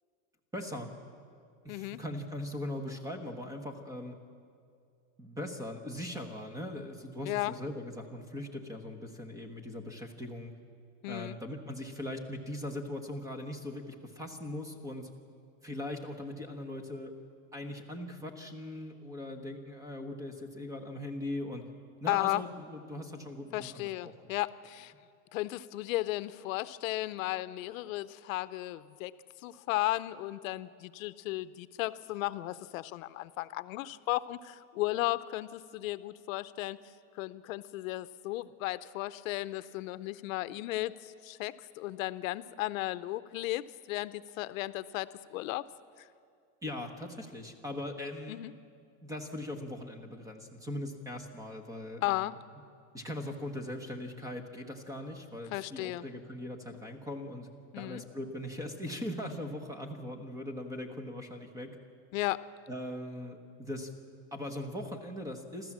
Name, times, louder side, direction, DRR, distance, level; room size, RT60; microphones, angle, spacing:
voice 1, 0.5-0.9 1.6-4.2 5.2-10.5 11.1-15.1 15.6-17.1 17.5-21.6 22.0-24.3 46.6-48.4 49.0-52.4 52.9-57.5 57.8-61.8 62.7-63.9 64.3-65.7, left 1 dB, 10° right, 6 dB, 1.2 m, -40 dB
voice 2, 1.7-2.0 7.2-7.5 11.0-11.4 22.1-22.4 23.5-24.9 25.3-29.1 29.4-36.8 37.2-45.6 46.0-46.1 48.3-48.5 52.0-52.3 55.5-56.0 57.7-58.0 62.1-62.4, left 17 dB, 75° left, 15 dB, 0.7 m, -35 dB
27.5 x 13.5 x 7.4 m, 2.3 s
supercardioid pair, 170°, 41 cm